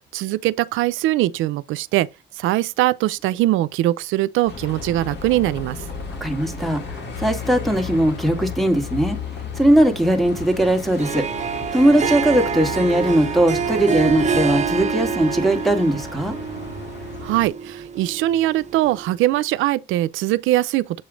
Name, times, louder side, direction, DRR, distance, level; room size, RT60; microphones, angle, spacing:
voice 1, 0.1-2.1 2.3-5.8 17.2-21.0, right 15 dB, 90° right, 0.4 m, -21 dB
Bus, 4.5-17.5, left 5 dB, 60° left, 2.1 m, -33 dB
voice 2, 6.2-9.2 9.6-11.3 11.7-16.4, right 1 dB, ahead, 1.7 m, -19 dB
Harp, 10.9-19.2, right 6 dB, 35° right, 1.1 m, -27 dB
7.6 x 3.1 x 4.9 m
cardioid pair, 90°, 20 cm